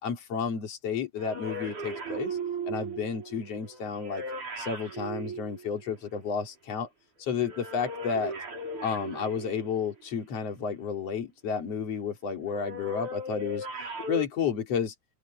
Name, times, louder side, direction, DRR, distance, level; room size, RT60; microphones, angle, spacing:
voice 1, 0.0-2.4 2.7-4.2 4.6-6.9 7.2-8.3 8.8-13.7 14.1-14.9, left 6 dB, 50° left, 4.0 m, -31 dB
sound 1, 1.2-6.2 7.4-10.0 12.4-14.3, right 2 dB, 65° right, 7.0 m, -37 dB
omnidirectional pair, 3.8 m